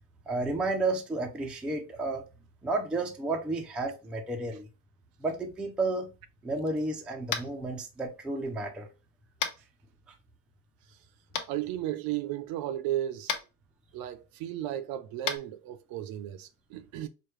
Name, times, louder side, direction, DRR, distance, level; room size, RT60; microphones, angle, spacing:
voice 1, 0.3-2.2 2.6-4.7 5.2-6.1 6.4-8.9, right 2 dB, ahead, 0.4 m, -32 dB
Tap, 7.3-7.6 9.4-9.6 11.3-11.4 13.2-13.4 15.2-15.4, left 7 dB, 40° left, 0.8 m, -31 dB
voice 2, 11.5-13.3 13.9-17.1, right 12 dB, 50° right, 0.5 m, -34 dB
4.9 x 2.2 x 3.0 m
supercardioid pair, 120°, 48 cm